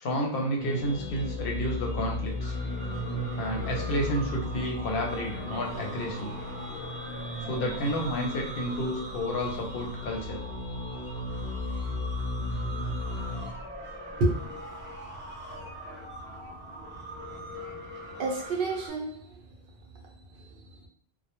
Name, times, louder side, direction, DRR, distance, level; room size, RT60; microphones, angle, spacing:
voice 1, 0.0-2.6 3.4-6.3 7.4-10.4, equal, 65° left, 0 dB, 0.8 m, -31 dB
sound 1, 0.6-13.5, left 1 dB, 20° left, 1.0 m, -35 dB
sound 2, 2.4-18.9, right 1 dB, 15° right, 0.4 m, -42 dB
voice 2, 18.1-19.3 20.3-20.9, right 2 dB, 65° right, -1 dB, 0.7 m, -30 dB
2.1 x 2.0 x 2.9 m, 0.62 s
omnidirectional pair, 1.1 m